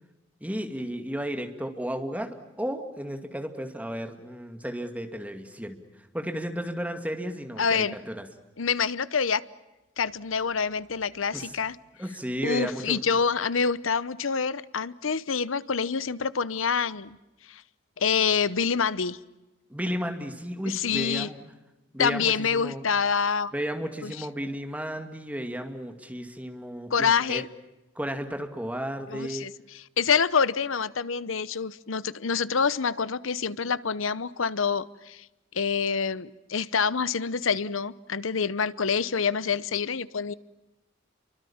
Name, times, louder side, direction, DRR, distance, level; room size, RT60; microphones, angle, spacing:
voice 1, 0.4-2.3 2.6-5.8 6.1-8.3 11.3-11.6 12.0-13.0 19.7-21.4 21.9-22.8 23.5-27.4 28.0-29.5, equal, 5° right, 5 dB, 2.3 m, -33 dB
voice 2, 7.6-8.0 8.6-9.4 10.0-11.7 12.4-17.2 17.5-17.6 18.0-19.2 20.7-21.3 22.0-23.5 24.0-24.3 26.9-27.5 29.1-29.5 30.0-35.2 35.5-40.3, left 6 dB, 85° left, 17 dB, 0.9 m, -26 dB
29.5 x 24.0 x 7.2 m, 1.0 s
head